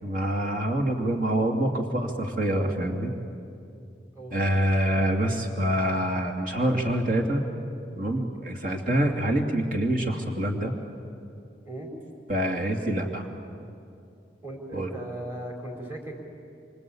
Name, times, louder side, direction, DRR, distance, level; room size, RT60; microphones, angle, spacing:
voice 1, 0.0-3.1 4.3-7.4 8.0-10.7 12.3-13.2 14.7-14.9, right 1 dB, 50° right, 2 dB, 2.6 m, -26 dB
voice 2, 4.1-4.5 11.6-11.9 14.4-16.2, right 1 dB, 15° right, 0 dB, 4.6 m, -37 dB
26.5 x 25.5 x 8.6 m, 2.6 s
head